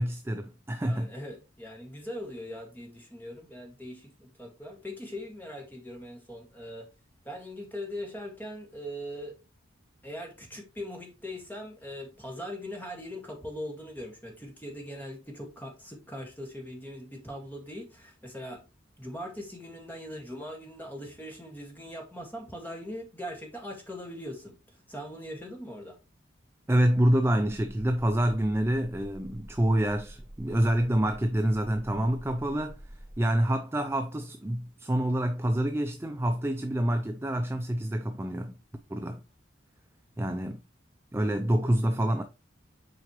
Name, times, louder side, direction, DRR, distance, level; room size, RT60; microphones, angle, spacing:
voice 1, 0.0-1.1 26.7-32.8 33.2-38.5 38.9-39.2 40.2-40.6 41.1-42.2, right 1 dB, 15° right, 0.4 m, -27 dB
voice 2, 0.8-6.9 7.2-9.4 10.0-18.6 19.0-26.0, equal, 10° left, 1.8 m, -41 dB
sound 1, 27.4-33.2, right 1 dB, 35° right, 1.0 m, -48 dB
7.7 x 4.8 x 3.1 m
head